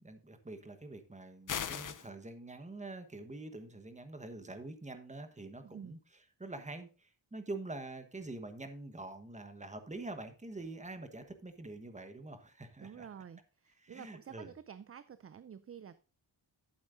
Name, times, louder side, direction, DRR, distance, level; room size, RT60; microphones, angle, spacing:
voice 1, 0.0-6.0 6.4-13.1 13.8-14.5, right 2 dB, 15° right, 8 dB, 1.2 m, -45 dB
sound 1, 1.5-2.1, left 8 dB, 45° left, 0.7 m, -37 dB
voice 2, 5.6-6.0 12.8-16.0, right 8 dB, 35° right, 14 dB, 0.4 m, -50 dB
11.5 x 8.6 x 2.7 m, 0.34 s
wide cardioid pair, 155°, 44 cm